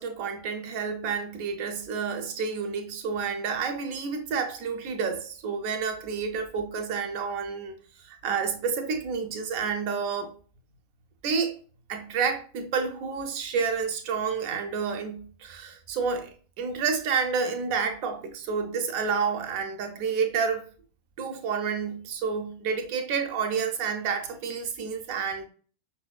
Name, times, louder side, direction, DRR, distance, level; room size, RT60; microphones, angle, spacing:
voice 1, 0.0-7.8 8.0-10.3 11.2-11.6 11.9-20.7 21.2-25.5, right 5 dB, 45° right, 0.7 m, -29 dB
5.6 x 2.8 x 2.3 m
figure-of-eight pair, 90°, 0 cm